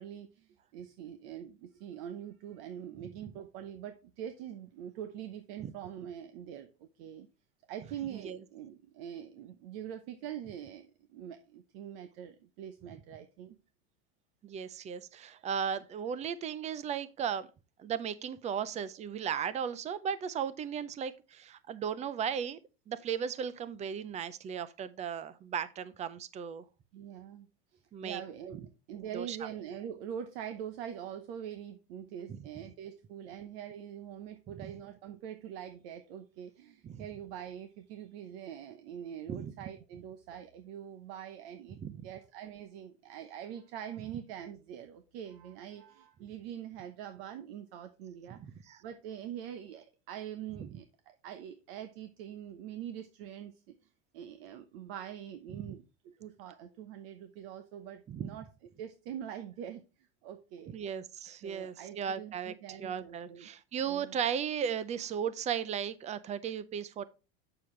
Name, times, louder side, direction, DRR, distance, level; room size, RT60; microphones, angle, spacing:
voice 1, 0.0-7.3 7.7-13.6 26.9-48.5 48.8-53.7 54.1-58.5 58.8-60.7 61.4-63.5 63.9-64.2, right 9 dB, 65° right, 1.0 m, -44 dB
voice 2, 14.4-17.5 17.8-22.6 22.9-26.6 27.9-28.2 29.1-29.4 32.3-32.4 34.6-34.7 36.8-37.1 39.3-39.5 41.8-42.0 48.3-48.8 55.5-55.7 58.1-58.3 60.7-62.5 62.8-67.0, right 8 dB, 20° right, 0.5 m, -36 dB
7.6 x 6.8 x 3.2 m
supercardioid pair, 135°, 32 cm